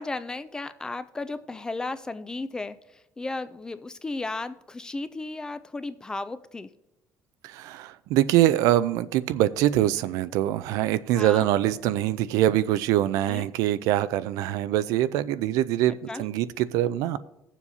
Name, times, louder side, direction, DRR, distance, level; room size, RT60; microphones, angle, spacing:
voice 1, 0.0-6.7 11.1-11.5 13.3-13.5 16.1-16.2, left 3 dB, 15° left, 13 dB, 0.3 m, -34 dB
voice 2, 7.4-17.2, right 13 dB, 90° right, 14 dB, 0.4 m, -24 dB
17.0 x 7.2 x 2.7 m, 0.92 s
cardioid pair, 155°, 6 cm